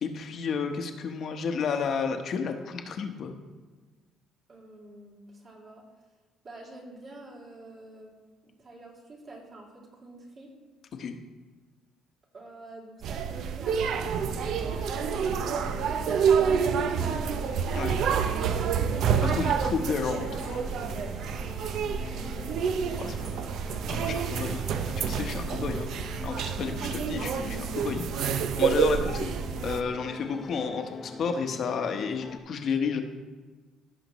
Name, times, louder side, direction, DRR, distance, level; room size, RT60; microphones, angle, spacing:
voice 1, 0.0-3.3 11.0-11.2 17.7-18.0 19.1-20.6 23.0-23.3 23.9-25.9 26.2-29.3 29.6-33.0, left 5 dB, 50° left, 6 dB, 1.0 m, -32 dB
voice 2, 4.5-5.8 6.4-8.1 8.4-10.5 12.3-17.2 22.1-23.5, right 2 dB, 45° right, -4 dB, 2.8 m, -48 dB
sound 1, 13.0-29.8, right 7 dB, 65° right, 0.5 m, -28 dB
sound 2, 14.1-32.4, left 4 dB, 30° left, 0.7 m, -43 dB
16.0 x 5.8 x 3.0 m, 1.3 s
cardioid pair, 115°, 0 cm